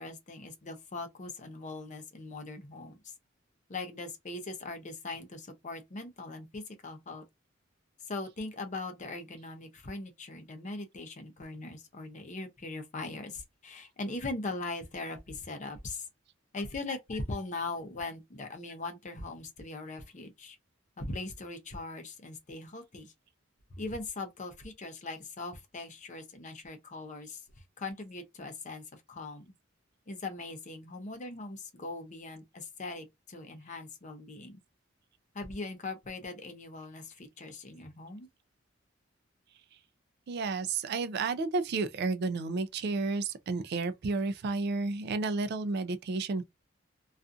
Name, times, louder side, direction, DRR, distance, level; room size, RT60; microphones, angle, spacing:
voice 1, 0.0-3.1 3.7-7.2 8.0-16.1 16.5-20.6 21.0-23.1 23.7-27.4 27.8-29.5 30.1-34.6 35.3-38.3, left 2 dB, 40° left, 0.6 m, -40 dB
voice 2, 40.3-46.4, right 3 dB, 55° right, 0.4 m, -31 dB
2.4 x 2.4 x 2.5 m
head